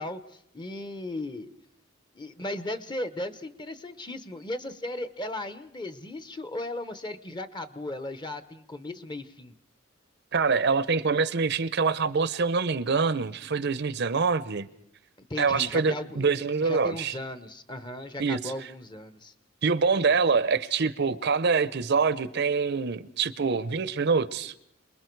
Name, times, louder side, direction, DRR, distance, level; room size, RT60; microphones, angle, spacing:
voice 1, 0.0-1.5 2.1-9.5 15.2-19.3 20.1-20.2, left 1 dB, 20° left, 12 dB, 0.9 m, -36 dB
voice 2, 10.3-14.7 15.4-17.1 18.2-18.5 19.6-24.5, right 5 dB, 55° right, 16 dB, 0.7 m, -25 dB
27.5 x 20.5 x 4.6 m, 0.75 s
head